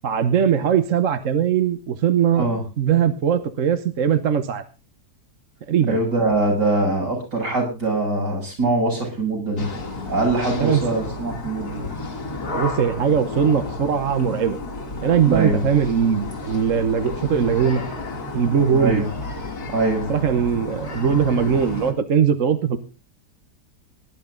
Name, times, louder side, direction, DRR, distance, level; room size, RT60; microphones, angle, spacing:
voice 1, 0.0-2.5 2.8-4.6 5.7-6.0 10.6-10.8 12.5-14.6 15.0-17.9 18.3-19.0 20.1-22.8, right 7 dB, 55° right, 9 dB, 1.3 m, -20 dB
voice 2, 5.9-9.7 10.1-11.9 15.2-15.6 18.7-19.1 19.7-20.1, right 2 dB, 75° right, -1 dB, 7.7 m, -22 dB
sound 1, 9.6-21.9, left 2 dB, 65° left, 2.8 m, -32 dB
19.0 x 11.0 x 3.9 m, 0.32 s
omnidirectional pair, 1.8 m